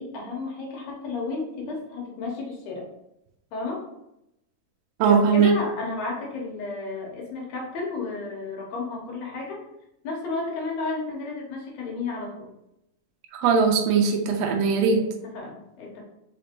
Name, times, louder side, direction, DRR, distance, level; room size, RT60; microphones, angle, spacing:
voice 1, 0.0-2.8 3.5-3.9 5.0-9.7 10.0-12.5 14.6-16.0, left 3 dB, 65° left, -1 dB, 1.9 m, -33 dB
voice 2, 5.0-5.5 13.3-15.1, right 6 dB, 90° right, 2 dB, 1.4 m, -20 dB
4.8 x 3.5 x 2.9 m, 0.86 s
omnidirectional pair, 3.8 m